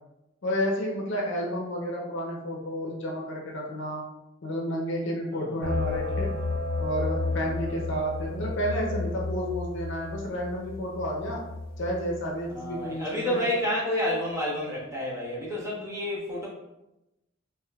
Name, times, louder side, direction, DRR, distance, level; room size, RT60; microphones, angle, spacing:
voice 1, 0.4-4.1 4.4-6.3 6.8-11.4 11.8-13.5, equal, 65° left, -1 dB, 0.7 m, -31 dB
sound 1, 5.6-12.1, left 2 dB, 85° right, 0.7 m, -32 dB
voice 2, 12.5-16.5, left 1 dB, 15° right, -7 dB, 1.1 m, -30 dB
3.5 x 2.9 x 2.3 m, 0.93 s
head